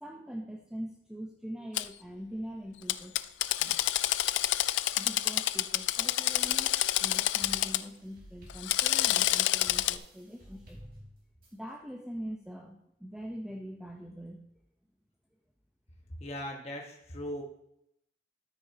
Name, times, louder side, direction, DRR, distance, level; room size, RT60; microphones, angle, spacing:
voice 1, 0.0-3.1 3.5-3.8 5.0-11.1 11.5-14.4, equal, 5° right, 0 dB, 0.7 m, -43 dB
Drill, 1.7-1.8 2.9-7.8 8.5-10.0, left 14 dB, 65° left, 0.3 m, -28 dB
sound 1, 6.4-11.7, equal, 50° right, 2.4 m, -55 dB
voice 2, 16.2-17.4, left 1 dB, 35° left, 0 dB, 1.3 m, -39 dB
13.0 x 6.3 x 2.8 m, 0.79 s
head